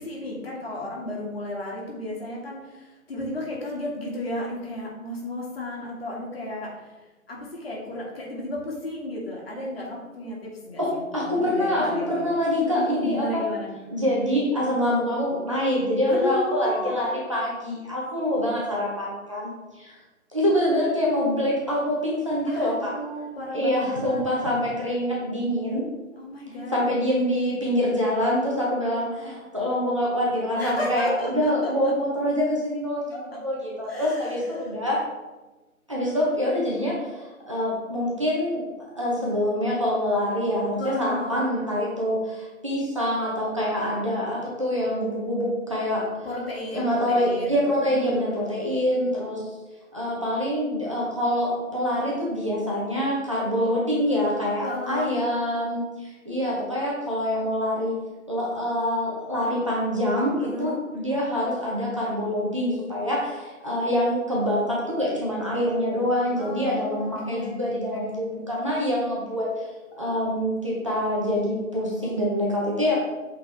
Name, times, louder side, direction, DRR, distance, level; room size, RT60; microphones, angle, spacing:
voice 1, 0.0-6.7 7.3-12.2 12.6-13.7 16.1-17.0 22.5-24.2 26.2-26.9 30.6-31.7 33.1-33.4 33.9-34.7 40.8-41.5 46.2-47.6 47.9-48.6 54.6-55.1 60.4-60.8 66.4-67.6 67.9-68.0, left 1 dB, 45° left, -3 dB, 1.9 m, -33 dB
voice 2, 10.8-13.5 13.9-20.0 20.3-23.0 23.5-25.8 26.7-35.1 35.9-38.6 38.9-46.1 46.7-49.5 49.9-58.0 58.3-69.7 70.0-73.0, equal, 25° right, -5 dB, 0.7 m, -25 dB
8.4 x 3.8 x 3.3 m, 1.2 s
figure-of-eight pair, 155°, 42 cm